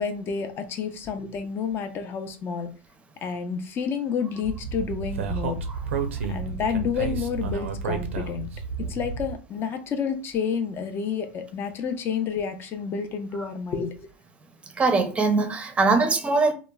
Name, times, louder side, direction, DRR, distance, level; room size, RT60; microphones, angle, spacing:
voice 1, 0.0-2.7 3.2-5.6 6.3-8.5 8.9-14.1, left 6 dB, 35° left, 0.5 m, -29 dB
Speech, 4.4-9.3, right 5 dB, 90° right, 0.4 m, -31 dB
voice 2, 5.7-6.1 8.8-8.9 13.4-13.5 14.7-16.5, right 3 dB, 20° right, 0.6 m, -23 dB
2.9 x 2.1 x 2.2 m
hypercardioid pair, 105°, 6 cm